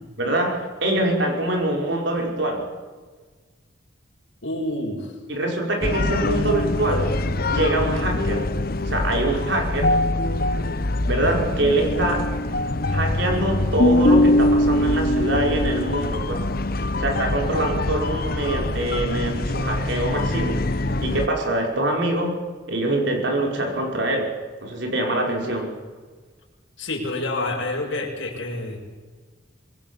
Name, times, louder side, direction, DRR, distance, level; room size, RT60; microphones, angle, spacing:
voice 1, 0.2-2.7 5.3-7.1 7.5-8.5 8.9-10.0 11.0-12.3 12.9-16.4 17.0-20.7 21.0-22.4 22.7-24.3 24.6-25.8, right 1 dB, 60° right, 1 dB, 5.4 m, -24 dB
voice 2, 4.4-5.1 11.3-11.5 26.8-28.8, left 2 dB, 65° left, 0 dB, 6.6 m, -28 dB
sound 1, 5.8-21.3, left 1 dB, 45° left, 1.0 m, -23 dB
25.5 x 21.5 x 7.3 m, 1.4 s
head